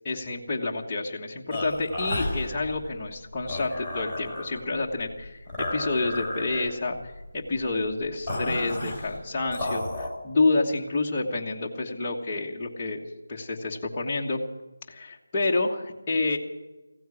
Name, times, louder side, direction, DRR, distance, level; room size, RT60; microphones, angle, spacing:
voice 1, 0.0-13.0 13.3-14.4 14.9-16.4, left 3 dB, 15° left, -4 dB, 1.3 m, -28 dB
sound 1, 1.5-10.1, left 1 dB, 5° right, 3.8 m, -33 dB
16.0 x 9.2 x 9.7 m, 1.1 s
figure-of-eight pair, 175°, 0 cm